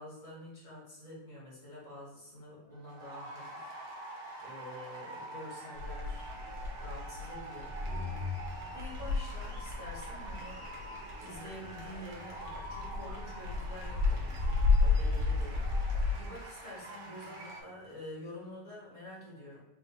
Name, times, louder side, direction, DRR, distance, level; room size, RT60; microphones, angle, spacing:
voice 1, 0.0-4.1 4.4-6.3 6.7-7.8 8.6-15.6 16.2-19.6, left 1 dB, 45° left, -7 dB, 1.9 m, -48 dB
sound 1, 2.6-17.6, right 1 dB, 85° right, 1.6 m, -46 dB
sound 2, 5.8-16.1, left 3 dB, 70° right, 1.8 m, -33 dB
sound 3, 7.5-17.9, left 3 dB, 35° right, 0.9 m, -47 dB
3.9 x 2.5 x 3.9 m, 1.0 s
omnidirectional pair, 1.9 m